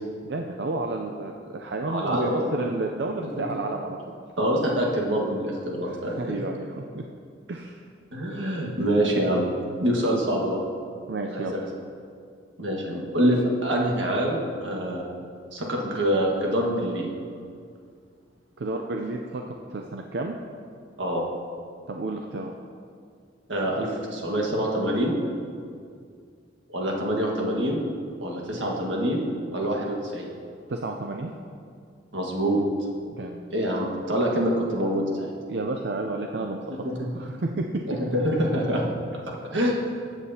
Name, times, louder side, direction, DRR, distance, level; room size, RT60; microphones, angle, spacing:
voice 1, 0.2-4.0 5.8-7.0 7.5-7.8 11.1-11.5 18.6-20.4 21.9-22.5 30.7-31.3 33.2-33.4 35.5-36.6 37.1-37.7, right 2 dB, 65° right, 2 dB, 0.5 m, -31 dB
voice 2, 1.9-2.5 4.4-6.2 8.1-9.5 9.8-10.6 11.3-11.5 12.6-15.1 15.5-17.1 21.0-21.2 23.5-25.1 26.7-27.8 28.2-29.3 29.5-30.3 32.1-32.6 33.5-35.3 36.8-37.1 38.1-38.8 39.5-39.7, equal, 85° right, -1 dB, 1.6 m, -25 dB
14.5 x 8.2 x 2.8 m, 2.3 s
head